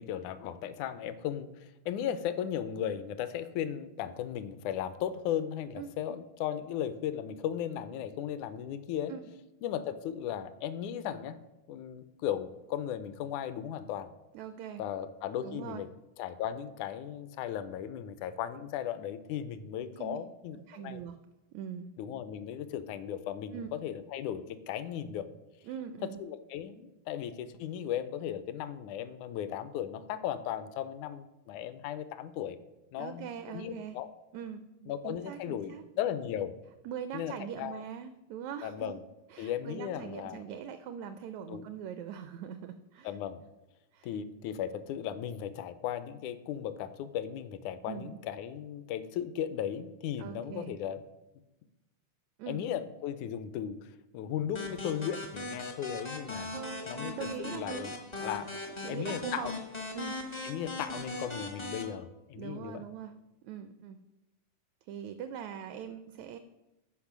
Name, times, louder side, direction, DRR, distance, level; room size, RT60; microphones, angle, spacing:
voice 1, 0.0-9.1 9.6-11.4 11.7-14.1 14.8-15.9 16.2-21.0 22.0-25.3 26.0-32.6 32.9-34.1 34.9-36.5 37.1-37.8 38.6-39.0 39.4-40.4 41.5-41.7 43.0-43.4 44.0-51.0 52.5-56.5 56.9-58.5 58.9-59.5 60.4-62.8, left 10 dB, 80° left, 13 dB, 1.9 m, -36 dB
voice 2, 5.8-6.2 9.1-9.2 14.3-14.8 15.4-15.8 20.0-20.2 20.7-21.1 21.5-21.9 23.5-23.7 25.6-26.2 33.0-34.0 34.3-35.8 36.8-38.9 39.3-43.1 43.9-44.1 47.9-48.2 50.2-50.7 52.4-52.6 56.5-58.0 58.7-59.5 59.9-60.2 62.4-63.1 63.4-64.0 64.9-66.4, right 8 dB, 85° right, 10 dB, 1.6 m, -42 dB
sound 1, 54.5-61.8, left 2 dB, 55° left, 0.4 m, -39 dB
12.5 x 5.2 x 6.0 m, 0.98 s
omnidirectional pair, 3.7 m